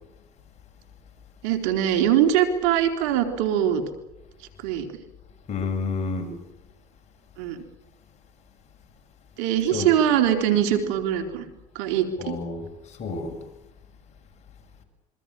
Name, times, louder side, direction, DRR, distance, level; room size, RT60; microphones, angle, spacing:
voice 1, 1.4-3.8 4.6-4.9 7.4-7.6 9.4-11.5 11.8-12.4, right 10 dB, 85° right, 7 dB, 3.5 m, -22 dB
voice 2, 5.5-6.3 9.7-9.9 12.2-13.4, left 4 dB, 50° left, 5 dB, 6.9 m, -30 dB
26.5 x 24.0 x 7.5 m, 0.94 s
supercardioid pair, 90°, 15 cm